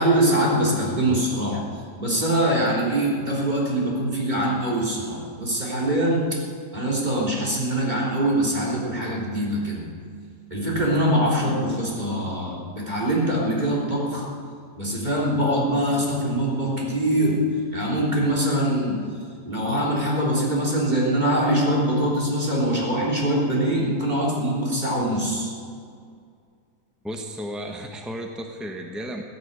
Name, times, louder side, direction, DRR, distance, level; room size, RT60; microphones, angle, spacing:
voice 1, 0.0-1.6 2.0-6.3 6.7-9.9 10.5-14.2 14.8-17.4 17.7-19.0 19.5-25.5, right 1 dB, 25° right, -4 dB, 3.5 m, -23 dB
voice 2, 27.0-29.2, equal, ahead, 3 dB, 0.5 m, -33 dB
16.0 x 9.5 x 8.1 m, 2.2 s
omnidirectional pair, 1.9 m